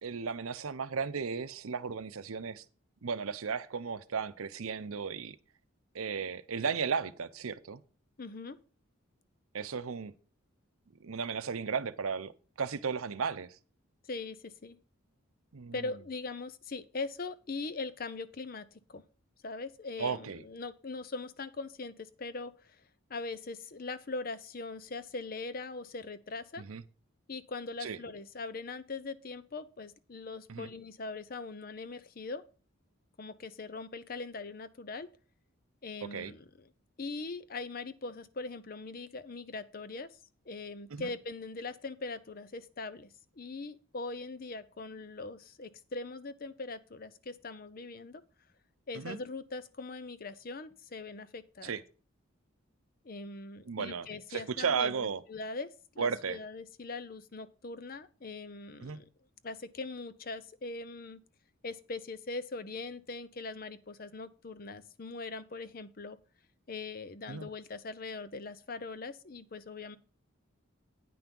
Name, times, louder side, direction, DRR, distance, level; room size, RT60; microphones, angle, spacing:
voice 1, 0.0-2.6 3.0-5.4 5.9-7.8 9.5-10.1 11.0-12.3 12.6-13.6 15.5-15.7 20.0-20.4 26.6-26.8 27.8-28.0 30.5-30.7 36.1-36.3 40.9-41.1 48.9-49.2 51.6-51.8 53.7-55.2 56.0-56.4 58.8-59.0 67.3-67.5, right 6 dB, 85° right, 0.7 m, -35 dB
voice 2, 8.2-8.6 14.1-14.8 15.7-19.0 19.4-22.8 23.1-26.6 27.3-32.4 33.2-35.1 35.8-36.7 37.0-40.2 40.4-43.1 43.4-48.2 48.9-51.7 53.0-59.0 59.4-61.2 61.6-66.2 66.7-70.0, left 3 dB, 45° left, 0.6 m, -41 dB
9.3 x 5.9 x 5.3 m
head